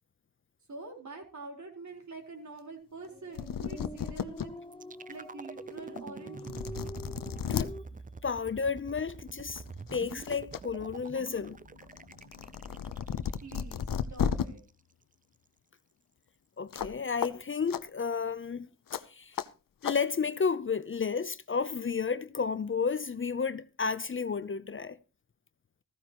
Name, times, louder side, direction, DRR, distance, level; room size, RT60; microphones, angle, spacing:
voice 1, 0.7-4.5 5.1-6.7 13.4-13.8 14.1-14.6, right 3 dB, 60° right, 4.3 m, -45 dB
sound 1, 3.1-3.2 3.3-4.5 5.0-5.1 6.0-6.1 6.4-7.7 9.0-9.1 9.5-10.6 10.9-14.4 16.7-16.9 17.2-17.3 17.7-17.8 18.9-19.0 19.4-19.5 19.8-20.0, left 8 dB, 80° left, 0.8 m, -34 dB
sound 2, 3.1-7.8, left 1 dB, 15° left, 1.0 m, -46 dB
sound 3, 4.7-14.7, right 4 dB, 25° right, 0.5 m, -46 dB
voice 2, 8.2-9.6 9.9-11.6 16.6-18.7 19.1-19.4 19.8-25.0, left 5 dB, 40° left, 0.7 m, -32 dB
14.5 x 14.5 x 3.0 m
cardioid pair, 55°, 33 cm